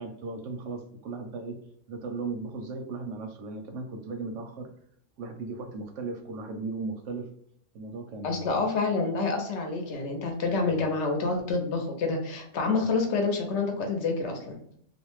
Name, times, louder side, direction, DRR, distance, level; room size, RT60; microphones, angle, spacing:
voice 1, 0.0-1.6 1.9-4.7 5.2-7.3 7.7-8.7 10.7-10.9, right 3 dB, 85° right, 4 dB, 0.9 m, -37 dB
voice 2, 8.2-14.5, left 3 dB, 70° left, 3 dB, 0.9 m, -28 dB
2.6 x 2.1 x 2.9 m, 0.68 s
omnidirectional pair, 1.3 m